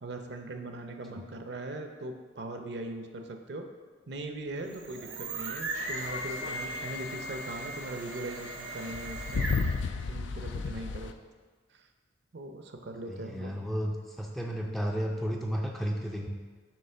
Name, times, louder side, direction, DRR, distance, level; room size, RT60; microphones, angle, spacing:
voice 1, 0.0-3.7 4.1-9.4 10.1-11.1 11.7-11.8 12.3-13.5, right 2 dB, 60° right, 5 dB, 0.6 m, -40 dB
sound 1, 4.6-9.9, right 2 dB, 80° right, 1.2 m, -38 dB
sound 2, 5.7-11.1, left 4 dB, 70° left, 0.4 m, -35 dB
voice 2, 13.1-16.3, equal, ahead, 0 dB, 0.4 m, -33 dB
7.7 x 3.1 x 5.5 m, 1.5 s
head